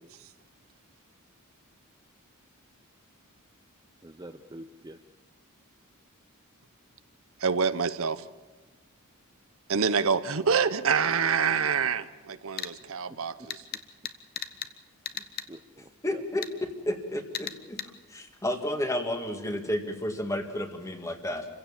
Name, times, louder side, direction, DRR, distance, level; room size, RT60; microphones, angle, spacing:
voice 1, 4.0-5.0 15.1-16.2, right 1 dB, 20° right, 5 dB, 0.8 m, -47 dB
voice 2, 7.4-8.2 9.7-13.6, right 6 dB, 65° right, 12 dB, 0.8 m, -26 dB
sound 1, 12.6-12.7 13.5-14.7 15.0-15.5 16.4-16.5 17.3-17.9, left 9 dB, 45° left, 1.0 m, -36 dB
voice 3, 16.0-17.8 18.1-21.5, left 1 dB, 15° left, 5 dB, 1.9 m, -31 dB
28.5 x 16.0 x 7.3 m, 1.2 s
head